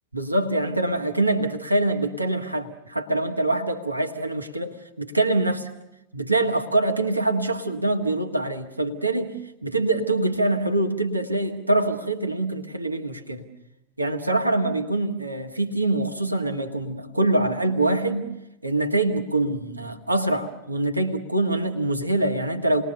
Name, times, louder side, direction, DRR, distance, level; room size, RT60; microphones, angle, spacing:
voice 1, 0.1-5.7 6.1-9.3 9.6-13.5 14.0-18.3 18.6-22.8, right 2 dB, 85° right, 4 dB, 1.6 m, -24 dB
28.5 x 21.0 x 6.7 m, 0.89 s
figure-of-eight pair, 90°, 0 cm